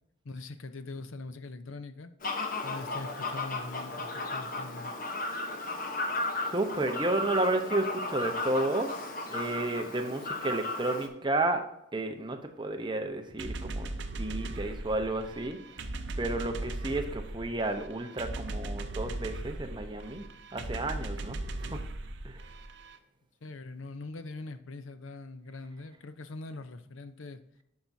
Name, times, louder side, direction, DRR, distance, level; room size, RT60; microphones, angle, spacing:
voice 1, 0.2-2.1 2.6-4.9 23.4-27.4, left 3 dB, 80° left, 11 dB, 0.6 m, -42 dB
Fowl, 2.2-11.1, left 2 dB, 45° left, 1.0 m, -35 dB
voice 2, 6.5-9.0 9.3-11.7 11.9-15.6 16.2-20.2 20.5-21.8 22.2-22.4, right 2 dB, 25° right, 5 dB, 0.8 m, -32 dB
sound 1, 13.4-23.0, right 2 dB, 60° right, 0.7 m, -38 dB
10.0 x 5.9 x 2.7 m, 0.80 s
head